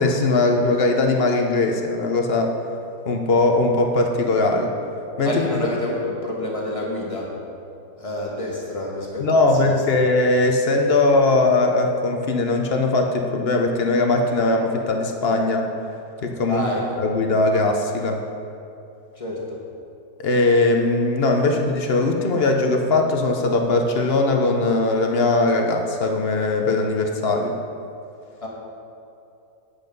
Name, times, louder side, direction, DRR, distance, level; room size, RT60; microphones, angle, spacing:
voice 1, 0.0-2.5 3.1-4.7 5.2-5.3 9.2-15.7 16.2-16.6 17.0-18.2 20.2-27.6, left 2 dB, 50° left, 3 dB, 0.8 m, -20 dB
voice 2, 5.2-7.3 8.0-9.8 16.5-17.0 19.1-19.6 28.4-28.5, left 1 dB, 20° left, -4 dB, 1.5 m, -28 dB
8.6 x 8.2 x 5.3 m, 2.7 s
omnidirectional pair, 1.7 m